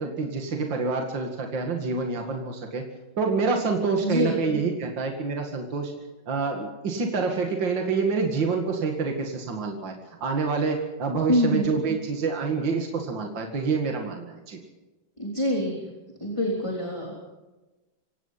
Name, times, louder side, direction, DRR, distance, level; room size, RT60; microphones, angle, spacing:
voice 1, 0.0-2.9 3.2-5.9 6.3-9.9 10.2-14.6, right 4 dB, 65° right, 2 dB, 2.8 m, -27 dB
voice 2, 4.0-4.4 11.3-11.7 15.2-15.9 16.2-17.2, equal, 15° left, -1 dB, 3.5 m, -25 dB
25.5 x 18.0 x 5.8 m, 1.1 s
omnidirectional pair, 2.2 m